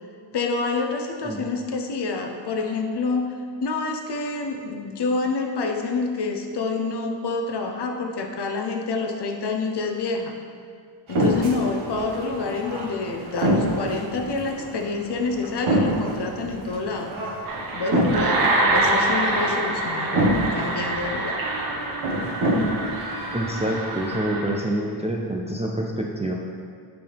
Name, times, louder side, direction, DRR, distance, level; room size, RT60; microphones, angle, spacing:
voice 1, 0.3-3.3 3.6-10.3 11.1-17.2 17.7-18.4 18.7-20.2 20.5-21.4, left 3 dB, 55° left, 3 dB, 0.7 m, -27 dB
sound 1, 11.1-24.2, right 1 dB, 70° right, 1.3 m, -27 dB
sound 2, 17.5-24.6, right 2 dB, 45° right, 1.1 m, -26 dB
voice 2, 23.3-26.3, right 1 dB, 15° right, -1 dB, 0.3 m, -27 dB
7.7 x 5.6 x 3.4 m, 2.2 s
wide cardioid pair, 160°, 48 cm